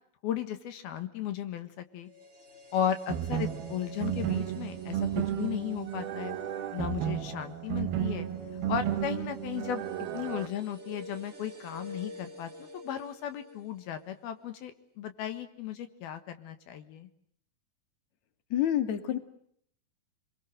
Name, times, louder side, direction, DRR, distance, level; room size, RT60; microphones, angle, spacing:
voice 1, 0.2-2.1 2.7-6.4 6.7-8.3 8.7-17.1, left 10 dB, 75° left, 9 dB, 3.5 m, -35 dB
sound 1, 2.0-14.1 14.4-14.5, equal, 20° right, 2.6 m, -49 dB
sound 2, 3.1-10.5, right 11 dB, 75° right, 3.3 m, -33 dB
voice 2, 18.5-19.2, left 11 dB, 50° left, 9 dB, 3.2 m, -27 dB
29.5 x 22.5 x 7.9 m, 0.69 s
omnidirectional pair, 4.4 m